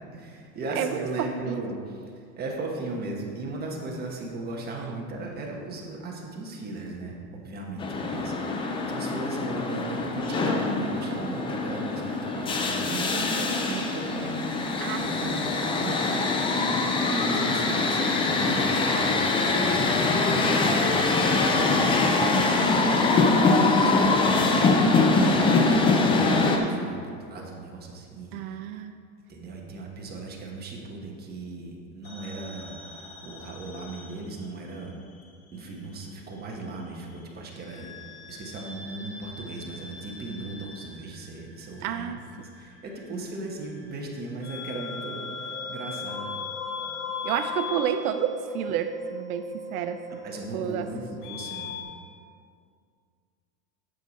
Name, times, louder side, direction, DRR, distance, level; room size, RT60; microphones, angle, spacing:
voice 1, 0.1-14.6 15.0-16.6 17.1-22.6 22.8-27.0 27.3-28.6 29.3-32.7 33.2-34.9 35.5-37.9 38.3-46.3 50.2-51.8, right 2 dB, 20° right, -1 dB, 1.3 m, -37 dB
voice 2, 0.8-1.6 14.8-15.3 28.3-28.9 41.8-42.2 47.2-50.2 50.5-50.9, right 9 dB, 85° right, 9 dB, 0.6 m, -30 dB
sound 1, 7.8-26.6, left 3 dB, 15° left, 0.4 m, -23 dB
sound 2, 32.0-34.9 35.1-36.3 37.5-51.8, left 4 dB, 80° left, 1.6 m, -39 dB
9.1 x 6.6 x 4.1 m, 2.2 s
supercardioid pair, 135°, 42 cm